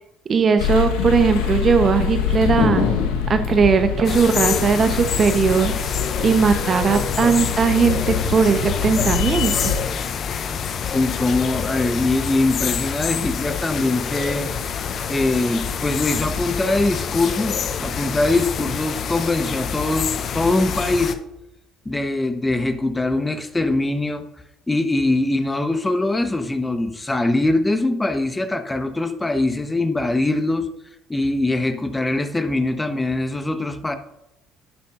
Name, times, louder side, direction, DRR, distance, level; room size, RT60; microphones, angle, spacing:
voice 1, 0.3-2.9 3.3-5.7 6.2-9.7, right 5 dB, 40° right, 8 dB, 0.9 m, -18 dB
sound 1, 0.6-9.8, left 7 dB, 75° left, 1.3 m, -25 dB
sound 2, 4.0-21.1, left 7 dB, 50° left, 0.7 m, -27 dB
voice 2, 10.8-14.5 15.1-21.2 21.8-24.3 24.7-30.7 31.1-34.0, left 2 dB, 15° left, 9 dB, 1.2 m, -22 dB
11.0 x 11.0 x 2.6 m, 0.89 s
hypercardioid pair, 55°, 0 cm